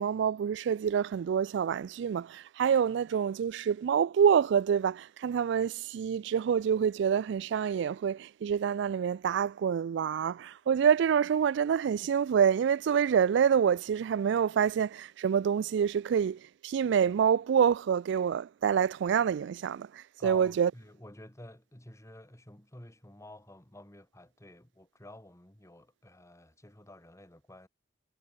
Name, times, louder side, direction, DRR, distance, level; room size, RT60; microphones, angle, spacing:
voice 1, 0.0-20.7, right 7 dB, 65° right, 0.3 m, -27 dB
voice 2, 20.2-27.7, left 1 dB, 15° left, 2.4 m, -50 dB
head